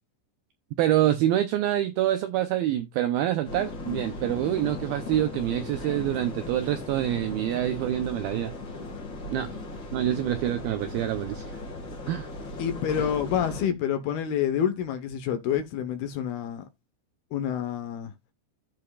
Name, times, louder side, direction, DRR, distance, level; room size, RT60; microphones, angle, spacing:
voice 1, 0.8-8.5 9.3-9.5 9.9-11.4 12.1-12.3 13.0-13.1, right 12 dB, 85° right, 2.1 m, -26 dB
sound 1, 3.5-13.7, left 2 dB, 40° left, 1.8 m, -37 dB
voice 2, 12.6-16.7 17.3-18.1, left 9 dB, 70° left, 2.6 m, -28 dB
15.0 x 5.2 x 2.4 m
omnidirectional pair, 5.2 m